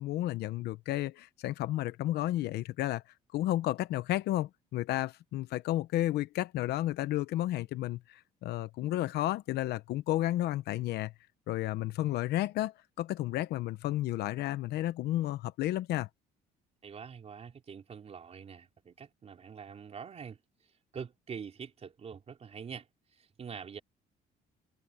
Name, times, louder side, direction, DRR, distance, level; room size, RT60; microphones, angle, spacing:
voice 1, 0.0-3.0 3.3-11.1 11.5-16.1, left 15 dB, 75° left, 0.8 m, -32 dB
voice 2, 16.8-20.4 20.9-22.9 23.1-23.8, right 6 dB, 40° right, 3.8 m, -45 dB
cardioid pair, 110°, 17 cm